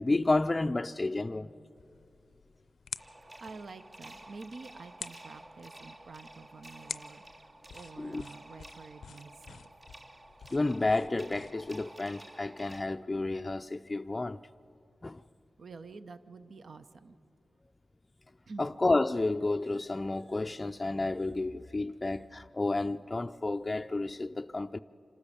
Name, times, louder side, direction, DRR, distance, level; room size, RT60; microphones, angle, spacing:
voice 1, 0.0-1.5 8.0-8.2 10.5-14.4 15.0-15.2 18.6-24.8, left 2 dB, 30° left, 0.4 m, -31 dB
sound 1, 1.8-11.8, left 6 dB, 85° left, 0.5 m, -49 dB
sound 2, 3.0-12.8, right 1 dB, 35° right, 0.9 m, -51 dB
voice 2, 3.4-9.7 15.6-17.2 18.5-18.7, right 4 dB, 65° right, 0.7 m, -48 dB
26.0 x 13.5 x 8.5 m
cardioid pair, 65°, 0 cm